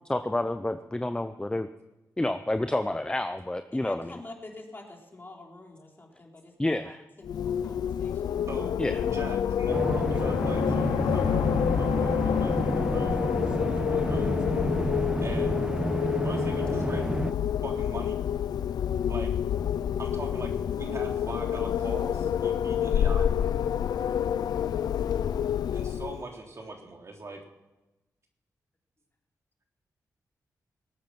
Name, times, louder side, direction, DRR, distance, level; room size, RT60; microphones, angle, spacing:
voice 1, 0.1-1.7 2.2-4.2 6.6-7.0 8.8-8.9, left 1 dB, 15° left, 10 dB, 0.7 m, -29 dB
voice 2, 3.7-7.0 7.5-8.5, left 2 dB, 30° left, 0 dB, 3.6 m, -47 dB
Wind, 7.2-26.3, left 9 dB, 85° left, 0.5 m, -28 dB
voice 3, 9.0-11.5 11.8-13.1 13.7-14.3 15.2-15.5 16.2-17.0 17.6-18.2 19.1-19.4 20.0-20.5 20.8-23.3 25.7-27.4, right 2 dB, 45° right, 1 dB, 3.5 m, -41 dB
sound 1, 9.7-17.3, right 1 dB, 15° right, 1.0 m, -30 dB
19.5 x 8.8 x 6.0 m, 1.0 s
cardioid pair, 65°, 7 cm